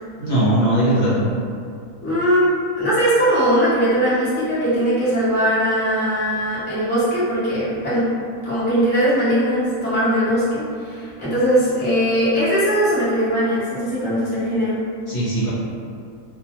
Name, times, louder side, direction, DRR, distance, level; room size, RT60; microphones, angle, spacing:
voice 1, 0.2-1.3 15.1-15.5, right 1 dB, 45° left, -11 dB, 0.9 m, -19 dB
voice 2, 2.0-2.5 2.8-8.1 8.4-14.8, equal, 10° left, -12 dB, 0.5 m, -20 dB
2.6 x 2.2 x 2.9 m, 2.4 s
omnidirectional pair, 1.5 m